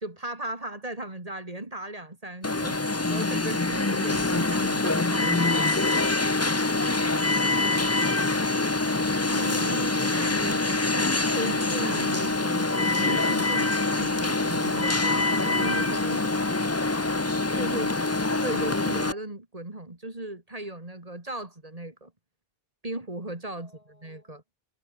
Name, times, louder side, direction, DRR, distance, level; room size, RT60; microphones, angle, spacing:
voice 1, 0.0-5.5 9.3-16.3 17.5-18.0 18.4-22.1 22.8-24.4, right 1 dB, 35° right, 3.0 m, -37 dB
Alarm, 2.4-19.1, left 2 dB, 15° left, 0.7 m, -25 dB
voice 2, 5.3-6.2 23.5-24.4, left 2 dB, 75° left, 5.4 m, -54 dB
sound 1, 12.7-18.6, right 2 dB, 60° right, 4.7 m, -52 dB
omnidirectional pair, 1.0 m